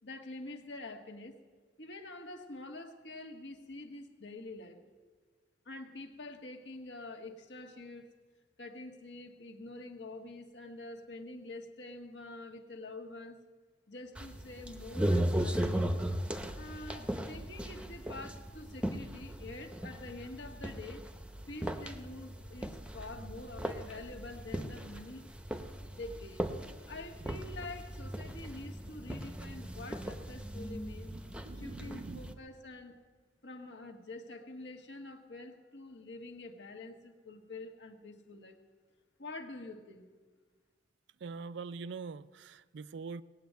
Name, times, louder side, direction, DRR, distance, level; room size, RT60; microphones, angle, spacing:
voice 1, 0.0-1.3 1.8-4.8 5.6-8.2 8.6-13.4 13.9-16.0 16.6-21.1 21.5-25.3 25.9-26.4 26.9-31.1 31.5-32.9 33.4-38.6 39.2-40.0, left 2 dB, 65° left, 4 dB, 1.5 m, -46 dB
sound 1, 14.2-32.3, right 1 dB, 5° right, 0.7 m, -38 dB
voice 2, 31.1-32.4 41.2-43.2, right 4 dB, 65° right, 16 dB, 0.4 m, -44 dB
18.5 x 7.7 x 9.2 m, 1.4 s
head